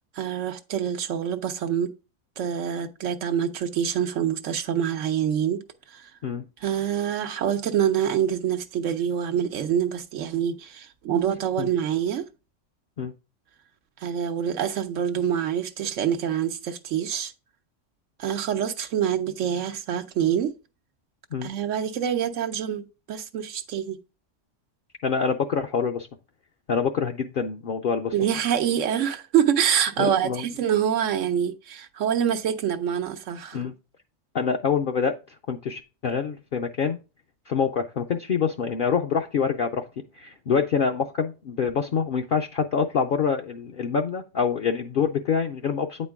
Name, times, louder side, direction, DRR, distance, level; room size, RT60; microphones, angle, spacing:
voice 1, 0.2-1.9 2.4-5.6 5.9-6.1 6.6-12.3 14.0-17.3 18.2-20.5 21.4-24.0 28.1-33.6, right 9 dB, 90° right, 1.1 m, -26 dB
voice 2, 25.0-26.1 26.7-28.1 30.0-30.4 33.5-33.7 34.3-35.2 35.5-37.0 37.5-39.9 40.2-46.1, left 6 dB, 55° left, 0.7 m, -26 dB
8.7 x 4.4 x 3.5 m
omnidirectional pair, 1.2 m